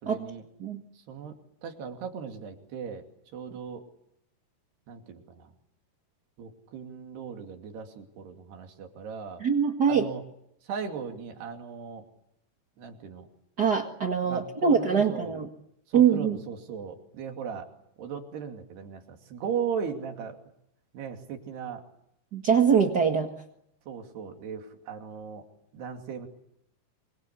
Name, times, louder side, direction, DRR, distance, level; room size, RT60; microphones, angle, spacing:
voice 1, 0.0-0.4 1.1-1.3 1.6-3.0 3.3-3.8 4.9-5.5 6.4-9.4 9.9-10.2 10.7-12.0 12.8-13.3 14.3-15.3 15.9-17.7 18.0-20.4 20.9-21.8 23.9-25.4 25.7-26.3, right 6 dB, 85° right, 4 dB, 4.8 m, -37 dB
voice 2, 9.4-10.1 13.6-15.5 15.9-16.4 22.3-23.3, right 7 dB, 45° right, 3 dB, 1.3 m, -23 dB
26.0 x 25.0 x 8.3 m, 0.75 s
omnidirectional pair, 4.6 m